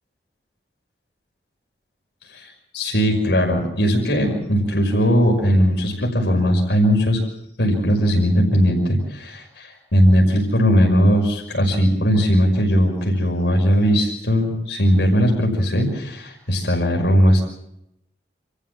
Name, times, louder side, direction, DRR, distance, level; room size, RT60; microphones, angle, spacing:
voice 1, 2.3-7.2 7.6-17.4, equal, 85° left, 0 dB, 5.7 m, -18 dB
28.5 x 14.5 x 7.5 m, 0.80 s
head